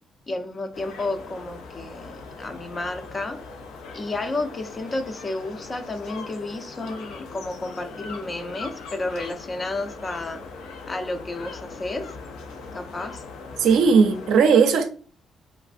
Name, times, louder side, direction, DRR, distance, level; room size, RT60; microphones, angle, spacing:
voice 1, 0.3-3.4 3.9-10.4 10.9-12.1 12.7-13.2, left 2 dB, 30° left, 0.5 m, -31 dB
sound 1, 0.7-14.4, left 4 dB, 90° left, 0.5 m, -40 dB
voice 2, 13.6-14.9, right 5 dB, 80° right, 0.4 m, -17 dB
3.2 x 2.4 x 2.4 m
cardioid pair, 90°, 0 cm